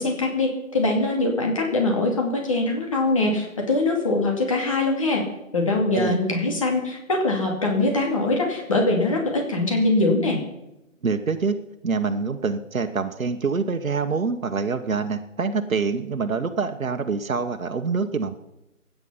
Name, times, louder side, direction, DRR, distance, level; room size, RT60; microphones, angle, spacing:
voice 1, 0.0-5.2 5.5-10.4, left 2 dB, 25° left, 1 dB, 2.4 m, -22 dB
voice 2, 11.0-11.6 11.8-18.3, right 4 dB, 80° right, 6 dB, 1.5 m, -25 dB
23.0 x 9.7 x 5.7 m, 0.91 s
hypercardioid pair, 180°, 40 cm